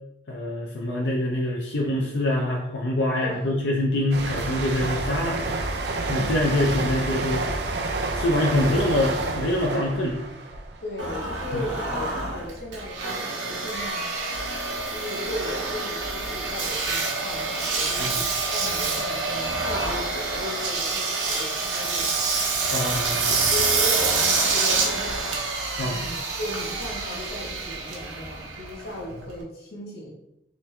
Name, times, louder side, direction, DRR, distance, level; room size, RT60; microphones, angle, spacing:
voice 1, 0.3-5.4 6.1-7.4 8.1-10.2 11.5-11.6 18.0-18.2 22.7-23.4 25.8-26.1, left 1 dB, 85° left, -1 dB, 0.5 m, -25 dB
voice 2, 3.2-3.6 10.8-14.1 14.9-22.4 23.4-25.3 25.8-30.1, left 1 dB, 60° left, -4 dB, 1.3 m, -36 dB
sound 1, 4.1-11.6 11.9-12.2, right 2 dB, 70° right, 0.4 m, -29 dB
Engine, 11.0-29.4, right 3 dB, 85° right, 0.8 m, -27 dB
3.4 x 3.1 x 3.2 m, 0.88 s
head